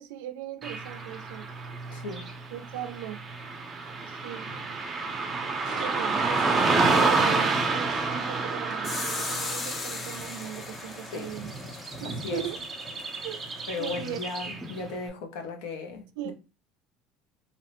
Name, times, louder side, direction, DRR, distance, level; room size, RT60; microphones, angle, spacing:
voice 1, 0.0-1.5 2.5-3.2 4.0-4.5 5.8-11.5 12.0-12.6 13.1-13.4 13.8-14.2 16.2-16.3, right 11 dB, 85° right, 0.3 m, -38 dB
Car passing by / Traffic noise roadway noise, 0.6-14.9, right 3 dB, 25° right, 0.5 m, -29 dB
voice 2, 1.9-2.3 11.1-11.3 12.0-12.5 13.7-16.3, left 4 dB, 85° left, 0.6 m, -36 dB
Crushing, 5.6-9.0 9.5-9.6, left 2 dB, 60° left, 1.1 m, -48 dB
sound 1, 8.8-14.5, left 4 dB, 30° left, 0.4 m, -39 dB
2.8 x 2.0 x 2.9 m
cardioid pair, 130°, 0 cm